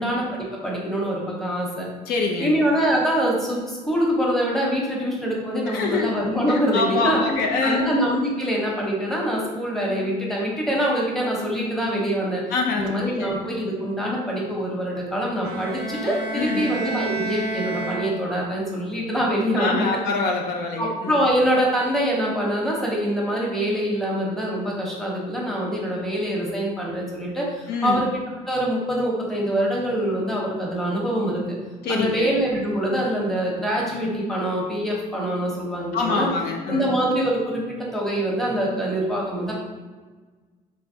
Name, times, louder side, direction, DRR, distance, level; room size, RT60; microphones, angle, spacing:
voice 1, 0.0-1.9 2.4-7.2 7.6-12.4 12.7-19.9 20.7-28.1 28.5-31.4 31.9-36.3 36.7-39.5, equal, ahead, -4 dB, 0.9 m, -24 dB
voice 2, 2.1-2.5 5.7-6.1 6.5-7.9 12.5-13.3 16.3-16.7 19.6-21.2 27.7-28.1 31.8-32.3 35.9-36.9, left 4 dB, 70° left, 1 dB, 0.5 m, -25 dB
Bowed string instrument, 15.4-18.6, right 3 dB, 80° right, 0.4 m, -30 dB
3.2 x 3.1 x 2.7 m, 1.4 s
cardioid pair, 110°, 17 cm